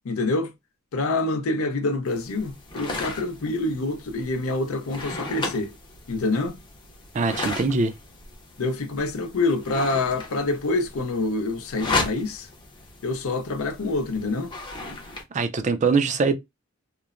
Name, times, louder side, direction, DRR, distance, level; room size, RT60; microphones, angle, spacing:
voice 1, 0.1-0.5 0.9-5.7 6.1-6.5 8.6-12.5 13.0-14.5, left 2 dB, 75° left, 0.6 m, -26 dB
sound 1, 2.1-15.2, left 3 dB, 20° left, 0.6 m, -35 dB
voice 2, 7.1-7.9 15.3-16.4, right 4 dB, 35° right, 0.4 m, -22 dB
3.0 x 2.0 x 2.4 m
head